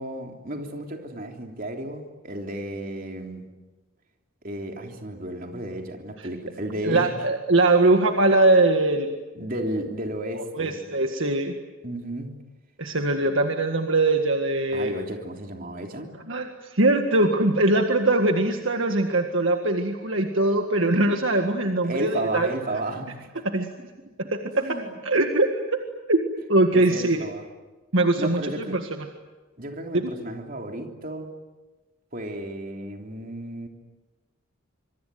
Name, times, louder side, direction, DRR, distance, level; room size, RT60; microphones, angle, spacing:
voice 1, 0.0-3.4 4.4-7.2 7.8-7.9 9.3-10.8 11.8-12.4 14.7-16.1 21.8-23.3 24.6-25.0 26.7-27.4 28.2-28.8 29.6-31.3 32.1-33.7, right 1 dB, 40° right, 3 dB, 3.4 m, -33 dB
voice 2, 6.8-9.1 10.6-11.5 12.8-15.0 16.3-22.5 23.4-23.7 24.3-24.6 25.0-25.8 26.1-26.2 26.5-27.2 27.9-29.0, right 2 dB, 60° right, 4 dB, 1.8 m, -21 dB
26.0 x 24.0 x 9.4 m, 1.2 s
head